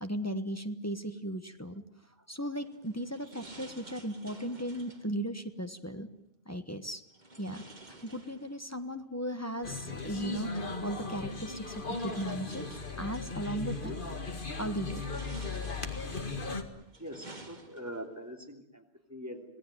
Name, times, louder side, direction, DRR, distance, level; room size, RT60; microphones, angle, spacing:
voice 1, 0.0-1.8 2.3-6.1 6.5-7.0 7.4-7.6 8.0-12.7 13.0-14.0 14.6-15.0, right 1 dB, 15° left, 8 dB, 1.3 m, -36 dB
sound 1, 2.6-5.1 7.1-8.8 10.1-10.2 11.2-13.3 13.9-14.3 14.8-16.2 16.7-18.2, right 2 dB, 45° right, 2.2 m, -52 dB
sound 2, 9.6-16.6, left 3 dB, 55° left, 2.2 m, -37 dB
voice 2, 17.0-19.4, equal, 15° right, 3 dB, 2.9 m, -43 dB
26.5 x 17.5 x 9.2 m, 0.78 s
omnidirectional pair, 1.1 m